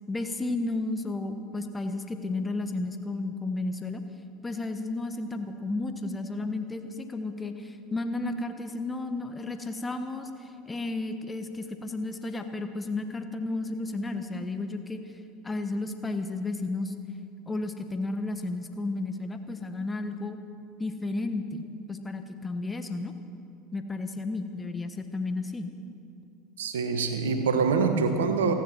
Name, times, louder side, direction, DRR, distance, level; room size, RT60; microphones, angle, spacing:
voice 1, 0.1-4.0 4.4-15.0 15.4-16.9 17.5-20.4 20.8-21.6 21.9-23.1 23.7-25.7, left 2 dB, 15° left, 7 dB, 1.2 m, -33 dB
voice 2, 26.6-28.5, right 5 dB, 70° right, 7 dB, 1.4 m, -25 dB
29.0 x 10.5 x 4.5 m, 2.6 s
figure-of-eight pair, 75°, 0 cm